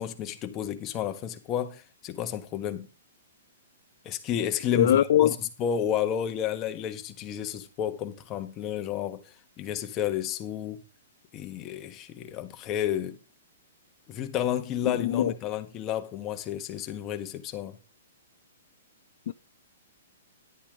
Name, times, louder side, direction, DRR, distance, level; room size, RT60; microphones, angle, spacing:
voice 1, 0.0-2.9 4.0-10.8 11.3-13.2 14.1-17.8, left 9 dB, 25° left, 1.3 m, -31 dB
voice 2, 4.7-5.3 15.0-15.3 19.3-19.4, left 11 dB, 55° left, 0.5 m, -21 dB
11.0 x 9.8 x 3.7 m
hypercardioid pair, 155°, 0 cm